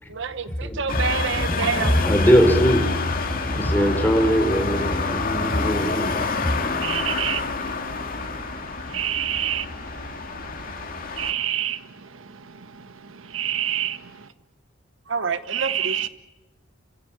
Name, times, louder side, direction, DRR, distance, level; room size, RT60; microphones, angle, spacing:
voice 1, 0.1-2.0 15.1-16.1, right 5 dB, 65° right, 1.0 m, -28 dB
sound 1, 0.9-11.3, left 4 dB, 45° left, 2.3 m, -28 dB
voice 2, 1.4-7.0, equal, 10° left, 4.1 m, -21 dB
voice 3, 6.8-14.3 15.5-16.1, right 10 dB, 80° right, 1.2 m, -30 dB
29.5 x 16.5 x 8.8 m
head